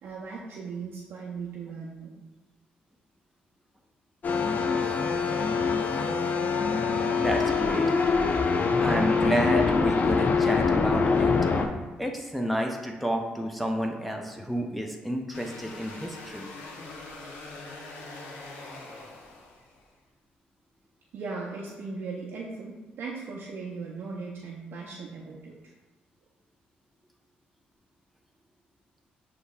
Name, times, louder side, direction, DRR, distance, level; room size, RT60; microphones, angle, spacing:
voice 1, 0.0-2.1 21.1-25.6, right 4 dB, 70° right, -3 dB, 0.6 m, -38 dB
sound 1, 4.2-11.7, left 5 dB, 50° left, 0.5 m, -24 dB
voice 2, 7.2-8.0 8.8-11.3 12.0-16.5, equal, ahead, 1 dB, 0.6 m, -30 dB
sound 2, 15.3-19.9, left 2 dB, 90° left, 0.6 m, -43 dB
6.3 x 2.8 x 2.3 m, 1.2 s
supercardioid pair, 60°, 4 cm